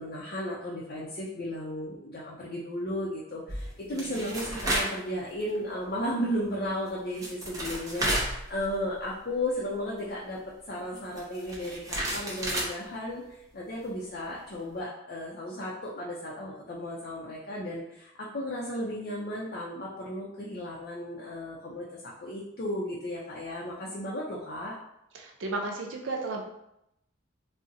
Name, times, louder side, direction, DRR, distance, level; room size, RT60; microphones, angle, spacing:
voice 1, 0.0-10.4 10.7-24.7, left 1 dB, 50° left, -5 dB, 0.5 m, -34 dB
sound 1, 3.5-5.0 5.4-5.6 6.9-7.0 7.1-9.0 9.3-9.4 11.0-12.7, right 1 dB, 20° right, 0.6 m, -32 dB
voice 2, 25.1-26.4, right 2 dB, 85° right, 1 dB, 0.6 m, -34 dB
3.7 x 2.0 x 2.6 m, 0.81 s
head